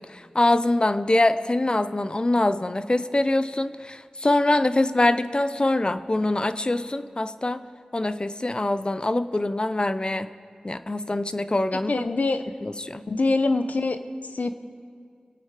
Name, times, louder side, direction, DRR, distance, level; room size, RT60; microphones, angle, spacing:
voice 1, 0.0-7.6 7.9-10.3 10.6-12.1 12.6-13.0, left 2 dB, 35° left, 12 dB, 0.6 m, -24 dB
voice 2, 11.9-12.4 13.1-14.0 14.2-14.5, left 3 dB, 70° left, 9 dB, 0.8 m, -24 dB
25.0 x 8.8 x 4.9 m, 2.2 s
wide cardioid pair, 50°, 3 cm